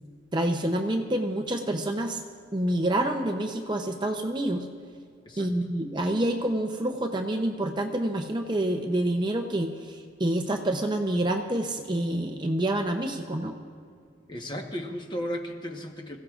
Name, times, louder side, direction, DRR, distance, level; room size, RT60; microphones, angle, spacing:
voice 1, 0.3-2.2 2.5-4.7 5.4-13.5, right 1 dB, 25° right, 4 dB, 0.6 m, -27 dB
voice 2, 14.3-16.2, equal, 25° left, 3 dB, 1.2 m, -34 dB
26.0 x 16.0 x 2.5 m, 2.1 s
head